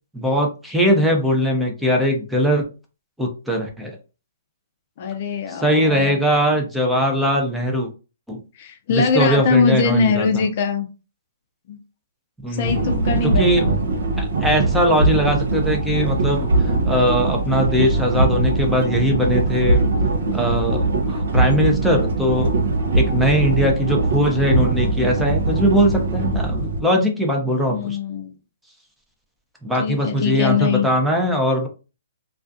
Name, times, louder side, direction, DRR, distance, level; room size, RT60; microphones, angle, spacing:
voice 1, 0.1-2.7 3.2-4.0 5.5-7.9 8.3-8.4 8.9-10.3 12.4-13.7 14.2-19.8 20.3-22.5 22.9-28.0 29.6-31.7, equal, 5° right, 0.6 m, -20 dB
voice 2, 5.0-6.2 8.6-10.9 11.7-11.8 12.5-13.5 27.7-28.3 29.8-30.9, left 4 dB, 45° left, 0.4 m, -21 dB
sound 1, 12.6-26.8, right 2 dB, 65° right, 0.6 m, -21 dB
2.3 x 2.3 x 2.5 m
hypercardioid pair, 140°, 0 cm